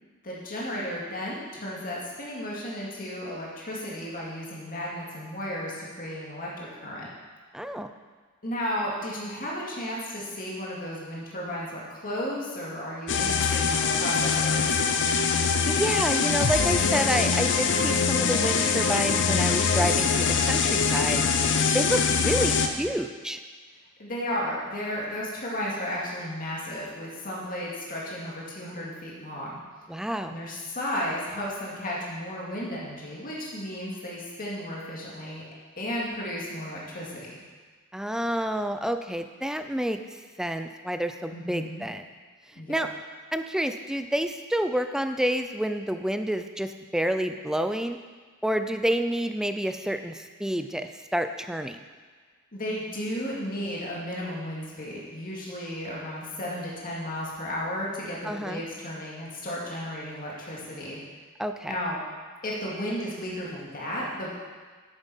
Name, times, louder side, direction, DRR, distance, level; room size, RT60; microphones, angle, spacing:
voice 1, 0.2-7.1 8.4-14.6 24.0-29.6 30.3-35.4 35.8-37.4 41.3-41.8 42.6-42.8 52.5-61.0 61.7-62.0 62.4-64.3, equal, 40° left, -5 dB, 2.1 m, -34 dB
voice 2, 7.5-7.9 15.4-21.2 21.7-23.4 29.9-30.4 37.9-42.0 42.5-42.9 43.3-48.0 48.4-51.8 58.2-58.6 61.4-61.8, right 1 dB, 5° right, 8 dB, 0.3 m, -29 dB
sound 1, 13.1-22.7, left 5 dB, 55° left, 0.7 m, -23 dB
9.1 x 7.1 x 5.6 m, 1.5 s
head